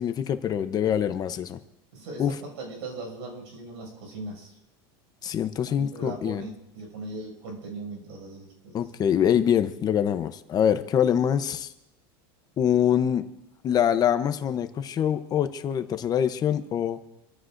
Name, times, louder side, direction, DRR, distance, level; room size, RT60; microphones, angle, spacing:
voice 1, 0.0-1.6 2.2-2.4 5.2-6.5 8.7-11.7 12.6-13.3 13.6-17.0, left 9 dB, 30° left, 10 dB, 0.8 m, -24 dB
voice 2, 1.9-4.6 5.7-8.8, right 2 dB, 90° right, 2 dB, 6.3 m, -39 dB
27.5 x 14.5 x 2.6 m, 0.86 s
supercardioid pair, 145°, 14 cm